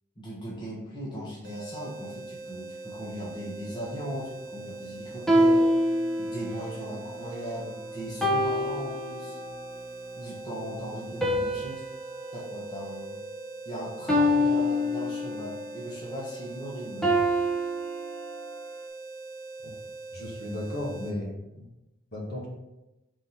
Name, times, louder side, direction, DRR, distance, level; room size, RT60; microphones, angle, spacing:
voice 1, 0.2-5.9 6.2-9.4 10.1-11.8 12.3-13.2 13.6-17.2, equal, 25° left, -6 dB, 1.3 m, -38 dB
sound 1, 1.4-21.2, right 3 dB, 55° right, 1.0 m, -42 dB
Keyboard (musical), 3.2-11.9, left 1 dB, 25° right, 1.2 m, -50 dB
sound 2, 5.3-6.7 8.2-9.6 11.2-13.6 14.1-15.6 17.0-18.6, equal, ahead, 0.9 m, -26 dB
voice 2, 20.1-21.6 22.1-22.5, left 1 dB, 50° left, -2 dB, 1.7 m, -35 dB
5.1 x 4.1 x 4.5 m, 0.97 s
head